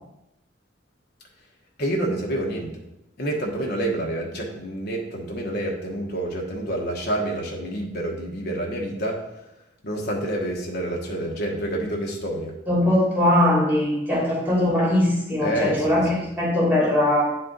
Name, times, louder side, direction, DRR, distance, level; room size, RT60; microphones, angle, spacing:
voice 1, 1.8-2.7 3.2-9.2 9.8-12.5 15.4-15.8, right 1 dB, 60° left, -1 dB, 1.1 m, -28 dB
voice 2, 12.7-17.2, left 1 dB, 10° right, -7 dB, 2.6 m, -20 dB
9.5 x 4.3 x 3.8 m, 0.90 s
head